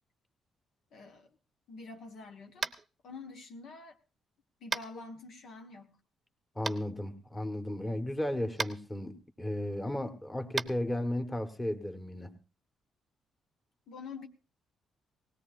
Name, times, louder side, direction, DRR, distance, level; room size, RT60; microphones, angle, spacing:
voice 1, 0.9-1.3 1.7-2.7 3.0-4.0 4.6-6.0 13.9-14.3, left 4 dB, 70° left, 3 dB, 1.5 m, -46 dB
Tap, 2.6-2.9 4.7-4.9 6.6-6.7 8.5-8.7 10.5-10.7, right 4 dB, 35° right, 0.8 m, -33 dB
voice 2, 6.5-12.3, left 1 dB, 15° left, 6 dB, 1.6 m, -34 dB
19.0 x 17.0 x 2.6 m, 0.33 s
cardioid pair, 90°, 0 cm